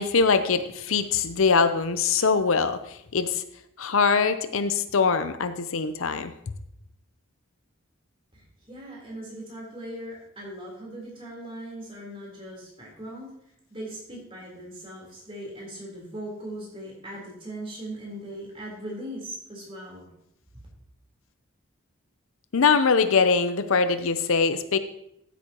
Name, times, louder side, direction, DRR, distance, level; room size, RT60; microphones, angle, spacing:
voice 1, 0.0-3.4 3.8-6.3 22.5-24.8, left 5 dB, 70° left, 10 dB, 0.6 m, -23 dB
voice 2, 8.3-13.3 13.7-20.1, right 1 dB, 25° right, -3 dB, 3.7 m, -39 dB
14.5 x 8.4 x 3.0 m, 0.77 s
head